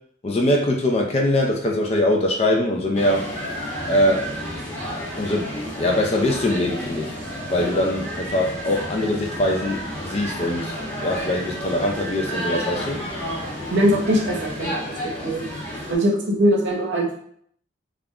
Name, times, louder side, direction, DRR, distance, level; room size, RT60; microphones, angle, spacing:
voice 1, 0.2-3.3 3.9-4.3 5.2-7.1 7.5-10.7 11.0-13.0, left 1 dB, 30° left, 1 dB, 0.3 m, -22 dB
sound 1, 2.9-16.0, equal, 10° left, 0.8 m, -31 dB
voice 2, 13.7-15.4 15.9-17.1, equal, 65° right, -1 dB, 0.7 m, -21 dB
2.4 x 2.1 x 3.5 m, 0.64 s
head